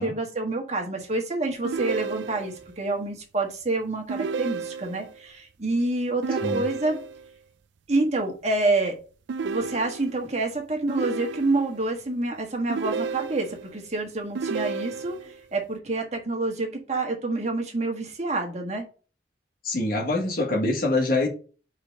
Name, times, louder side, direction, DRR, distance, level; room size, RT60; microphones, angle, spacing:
voice 1, 0.0-7.0 7.9-8.9 9.4-15.2 15.5-18.8, right 2 dB, 40° right, 1.6 m, -27 dB
sound 1, 1.6-2.7 4.1-5.1 6.2-7.3 9.3-10.3 10.9-11.8 12.7-13.7 14.3-15.4, right 4 dB, 90° right, 0.4 m, -32 dB
voice 2, 19.6-21.3, left 2 dB, 55° left, 1.6 m, -25 dB
4.9 x 4.4 x 5.3 m
head